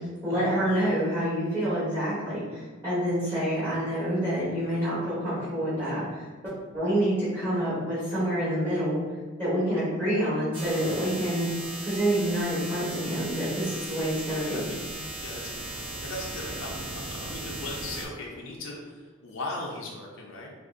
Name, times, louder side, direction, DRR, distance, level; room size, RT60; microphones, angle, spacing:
voice 1, 0.2-9.0 9.4-11.5 11.8-14.7, equal, 15° right, -13 dB, 1.3 m, -27 dB
sound 1, 10.5-18.1, right 2 dB, 80° right, 0.8 m, -37 dB
voice 2, 14.4-14.9 15.2-20.5, left 2 dB, 80° left, -2 dB, 0.6 m, -38 dB
3.9 x 2.6 x 2.5 m, 1.4 s
head